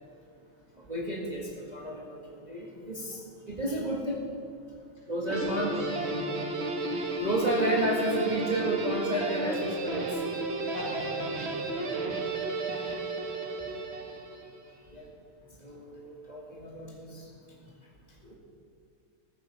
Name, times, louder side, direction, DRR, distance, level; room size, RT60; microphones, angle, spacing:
voice 1, 0.9-2.2 2.5-4.2 5.1-5.7 6.8-10.2 10.5-10.6 12.7-12.9 14.9-15.0 15.6-17.3 18.2-18.3, right 1 dB, 20° right, -2 dB, 1.9 m, -32 dB
voice 2, 5.2-6.3 10.7-12.2 13.3-13.4, equal, 65° left, -4 dB, 5.6 m, -40 dB
Guitar, 5.3-14.6, right 2 dB, 35° right, 1.3 m, -33 dB
15.0 x 14.0 x 5.4 m, 2.5 s
omnidirectional pair, 2.4 m